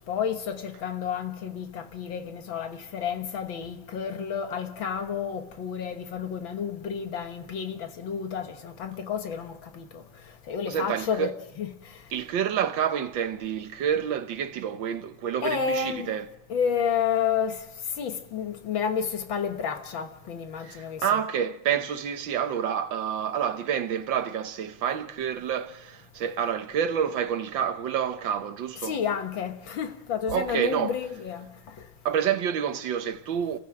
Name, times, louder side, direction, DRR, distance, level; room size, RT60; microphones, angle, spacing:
voice 1, 0.0-10.0 10.5-11.3 11.6-11.7 15.4-16.1 16.5-17.6 18.0-21.2 28.8-31.5, left 7 dB, 85° left, 2.2 m, -30 dB
voice 2, 10.7-11.3 12.1-16.3 20.6-29.0 30.3-30.9 32.1-33.6, right 8 dB, 80° right, 1.8 m, -28 dB
29.0 x 15.0 x 7.7 m
omnidirectional pair, 2.1 m